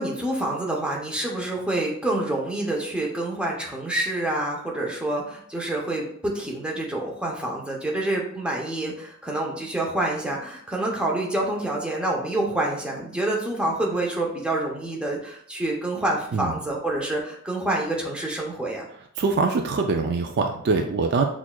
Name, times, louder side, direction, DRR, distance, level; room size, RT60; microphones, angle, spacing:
voice 1, 0.0-18.9, right 1 dB, 5° right, -2 dB, 0.7 m, -27 dB
voice 2, 19.2-21.2, right 4 dB, 50° right, 5 dB, 0.3 m, -23 dB
5.9 x 2.4 x 2.2 m, 0.66 s
head